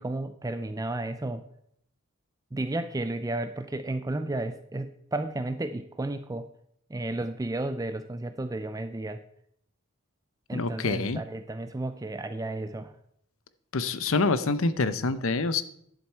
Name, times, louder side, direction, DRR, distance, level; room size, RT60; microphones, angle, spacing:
voice 1, 0.0-1.4 2.5-6.5 6.9-9.2 10.5-13.0, right 2 dB, 15° right, 9 dB, 0.4 m, -33 dB
voice 2, 10.5-11.2 13.7-15.6, left 3 dB, 70° left, 14 dB, 0.7 m, -26 dB
11.0 x 7.4 x 4.5 m, 0.70 s
head